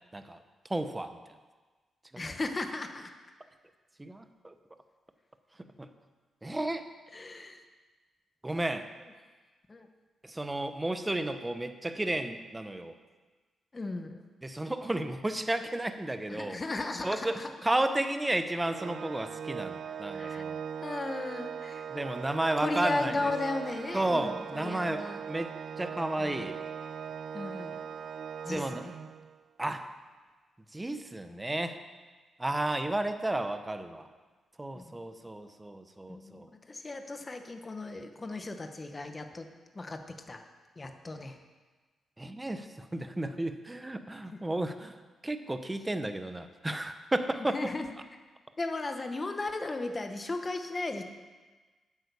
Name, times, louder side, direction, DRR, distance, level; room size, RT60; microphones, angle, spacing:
voice 1, 0.7-1.2 4.0-4.5 5.8-5.9 6.4-6.8 8.4-8.9 10.2-12.9 14.4-16.6 17.0-20.6 21.9-23.3 23.9-25.5 25.8-26.6 28.5-28.9 29.6-29.9 30.7-31.8 32.4-34.1 34.6-36.5 42.2-44.9 45.2-47.6, right 1 dB, 15° right, 9 dB, 0.8 m, -32 dB
voice 2, 2.2-3.1 7.1-7.6 9.7-9.9 13.7-14.2 16.3-17.5 20.1-20.4 20.8-21.9 22.6-25.2 26.2-26.6 27.3-27.8 28.4-28.9 34.7-35.1 36.1-39.5 39.7-40.0 40.3-40.4 40.8-41.4 47.5-47.9 48.6-51.0, left 2 dB, 25° left, 6 dB, 1.0 m, -36 dB
Organ, 18.7-29.4, right 7 dB, 60° right, 0.4 m, -40 dB
9.3 x 8.2 x 6.9 m, 1.3 s
cardioid pair, 110°, 0 cm